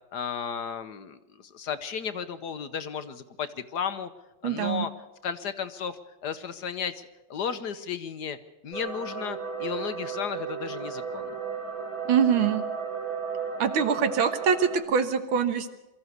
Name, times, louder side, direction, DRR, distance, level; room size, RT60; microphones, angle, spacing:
voice 1, 0.1-4.1 4.4-4.9 5.2-7.0 7.3-8.4 8.6-11.3, left 7 dB, 60° left, 11 dB, 1.4 m, -34 dB
voice 2, 4.4-4.9 12.1-12.6 13.6-15.7, right 7 dB, 80° right, 9 dB, 2.1 m, -24 dB
sound 1, 8.7-14.8, right 6 dB, 35° right, 4.0 m, -34 dB
23.5 x 14.0 x 8.1 m, 1.0 s
omnidirectional pair, 2.2 m